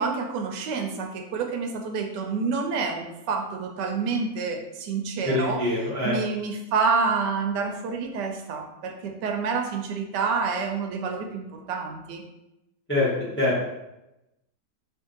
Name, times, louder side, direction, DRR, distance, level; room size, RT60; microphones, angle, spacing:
voice 1, 0.0-5.6 6.0-12.2, right 4 dB, 85° right, 3 dB, 1.2 m, -28 dB
voice 2, 5.2-6.1 12.9-13.1 13.4-13.5, left 2 dB, 10° left, -7 dB, 0.6 m, -24 dB
3.1 x 2.6 x 3.7 m, 0.93 s
omnidirectional pair, 1.8 m